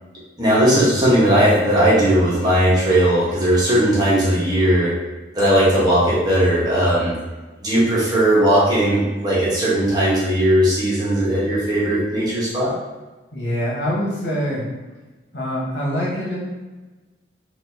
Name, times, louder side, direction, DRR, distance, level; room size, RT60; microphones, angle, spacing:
voice 1, 0.4-5.0 5.3-7.1 7.6-12.7, right 1 dB, 20° right, -8 dB, 1.1 m, -17 dB
voice 2, 13.3-14.7 15.3-16.4, equal, 75° left, -6 dB, 1.3 m, -24 dB
4.3 x 2.6 x 2.7 m, 1.2 s
head